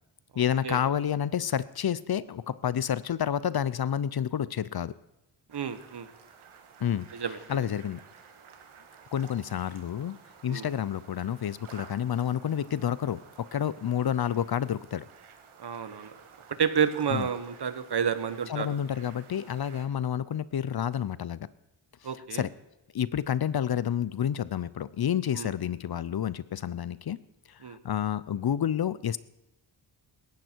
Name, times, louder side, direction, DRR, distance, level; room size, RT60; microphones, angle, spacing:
voice 1, 0.4-4.9 6.8-7.1 7.5-8.0 9.1-10.2 10.4-15.1 17.1-17.3 18.5-21.5 22.1-22.5 22.9-27.2 27.5-29.2, left 9 dB, 50° left, 18 dB, 0.6 m, -29 dB
voice 2, 5.5-6.1 7.1-7.6 10.5-10.7 15.6-16.2 16.5-18.8 22.0-22.4 25.3-25.5 27.6-27.8, right 7 dB, 55° right, 12 dB, 1.3 m, -30 dB
sound 1, 5.5-19.8, right 6 dB, 85° right, 2.0 m, -53 dB
18.0 x 14.5 x 4.6 m, 0.92 s
cardioid pair, 80°, 48 cm